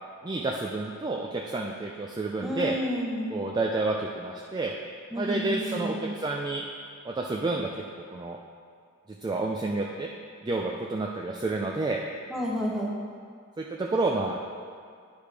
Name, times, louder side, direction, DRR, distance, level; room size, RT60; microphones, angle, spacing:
voice 1, 0.2-2.8 3.3-4.8 5.2-6.6 7.0-7.7 8.1-8.4 9.2-10.1 10.4-12.0 13.6-14.4, right 3 dB, 20° right, 0 dB, 0.3 m, -29 dB
voice 2, 2.4-3.3 5.1-6.0 12.3-12.9, equal, ahead, -3 dB, 0.9 m, -30 dB
9.9 x 5.0 x 3.3 m, 2.1 s
head